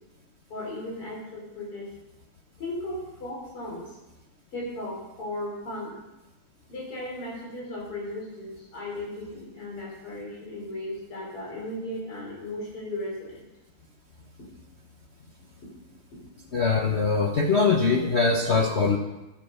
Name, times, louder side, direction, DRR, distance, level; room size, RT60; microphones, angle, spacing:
voice 1, 0.5-1.9 2.6-4.0 4.5-5.9 6.7-13.4, left 1 dB, 90° left, -3 dB, 4.6 m, -36 dB
voice 2, 16.5-19.0, left 4 dB, 60° left, 1 dB, 0.7 m, -22 dB
12.0 x 8.1 x 5.5 m, 0.99 s
omnidirectional pair, 2.4 m